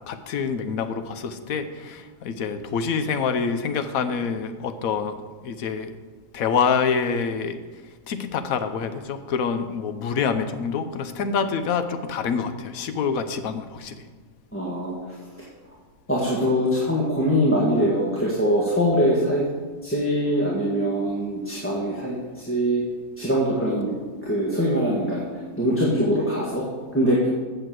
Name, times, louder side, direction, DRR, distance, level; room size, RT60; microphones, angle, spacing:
voice 1, 0.1-5.9 6.3-14.0, left 6 dB, 75° left, 10 dB, 1.2 m, -26 dB
voice 2, 14.5-14.9 16.1-19.5 19.8-22.8 23.2-23.9 24.2-25.3 25.6-26.7 26.9-27.3, equal, 10° left, -6 dB, 1.5 m, -23 dB
8.1 x 6.7 x 7.6 m, 1.4 s
omnidirectional pair, 1.5 m